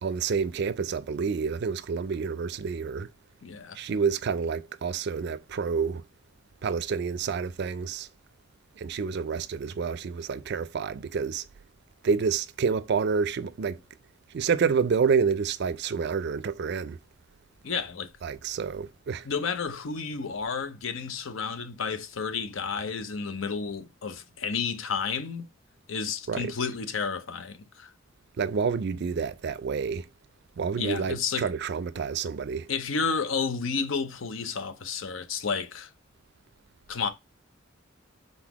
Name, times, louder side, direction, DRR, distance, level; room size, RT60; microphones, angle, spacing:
voice 1, 0.0-3.1 3.8-6.0 6.6-8.1 8.8-11.5 12.0-13.8 14.3-17.0 18.2-19.3 26.3-26.5 28.4-30.1 30.6-32.7, right 5 dB, 55° right, 0.4 m, -28 dB
voice 2, 3.4-3.8 17.6-18.1 19.2-25.5 25.9-27.9 30.8-31.5 32.7-35.9 36.9-37.1, left 5 dB, 80° left, 0.6 m, -31 dB
4.0 x 3.9 x 2.9 m
head